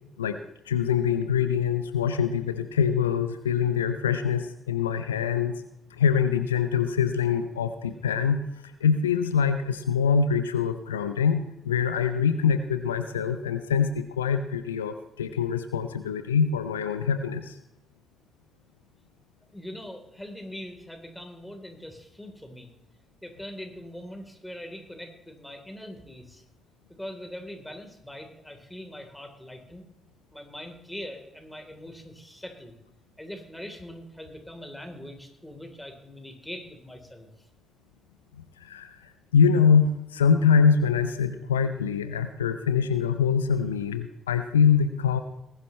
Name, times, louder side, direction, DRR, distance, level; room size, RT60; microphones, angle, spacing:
voice 1, 0.7-5.5 6.0-8.4 8.8-17.5 38.6-38.9 39.3-45.2, left 6 dB, 90° left, 10 dB, 0.6 m, -24 dB
voice 2, 19.5-22.7 23.2-26.4 27.0-29.8 30.3-32.8 33.2-37.3, left 1 dB, 5° left, 3 dB, 3.6 m, -42 dB
20.0 x 11.0 x 3.2 m, 0.84 s
hypercardioid pair, 40°, 0 cm